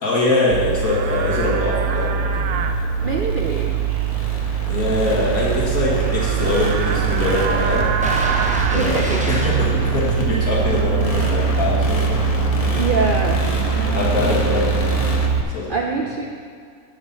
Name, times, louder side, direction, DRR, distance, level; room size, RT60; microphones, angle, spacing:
voice 1, 0.0-2.6 4.7-7.9 8.7-12.6 13.9-14.9 15.5-15.8, left 2 dB, 75° left, -6 dB, 2.4 m, -23 dB
Livestock farm animals working animals, 0.5-15.4, right 7 dB, 80° right, 1.1 m, -22 dB
sound 1, 2.0-15.3, left 2 dB, 35° left, 0.7 m, -29 dB
voice 2, 3.0-3.8 8.7-9.5 12.7-13.5 14.3-14.6 15.5-16.3, right 4 dB, 60° right, 1 dB, 0.5 m, -24 dB
sound 2, 8.0-11.0 11.4-11.5, equal, 10° right, 0.5 m, -30 dB
8.0 x 6.3 x 5.5 m, 2.2 s
omnidirectional pair, 1.5 m